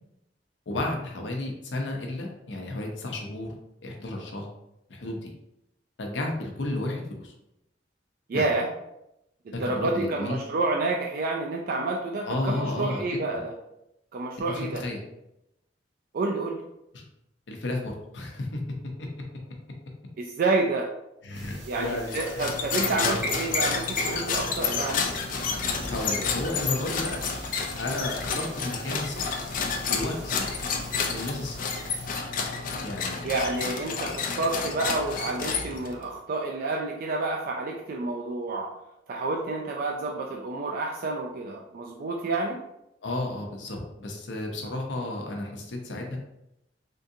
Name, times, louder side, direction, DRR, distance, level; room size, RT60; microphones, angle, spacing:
voice 1, 0.7-3.5 3.8-4.5 4.9-5.3 6.0-7.3 8.3-8.4 9.6-10.4 12.2-13.4 14.5-15.0 16.9-17.0 17.5-18.6 19.0-19.1 21.2-22.5 22.9-23.2 25.9-27.2 27.8-29.2 29.9-30.5 31.1-31.6 32.8-33.3 34.0-34.1 43.0-46.2, left 2 dB, 80° left, 1 dB, 0.7 m, -32 dB
voice 2, 8.3-8.7 9.5-13.5 14.1-14.8 16.1-16.6 20.2-20.9 21.7-25.1 33.2-38.7 39.1-42.6, right 3 dB, 55° right, 0 dB, 0.3 m, -29 dB
sound 1, 21.3-32.1, right 2 dB, 85° right, 0.8 m, -45 dB
sound 2, 22.1-36.0, left 5 dB, 50° left, 0.4 m, -30 dB
sound 3, 23.2-24.4, equal, 10° right, 0.9 m, -34 dB
3.6 x 2.6 x 2.6 m, 0.86 s
head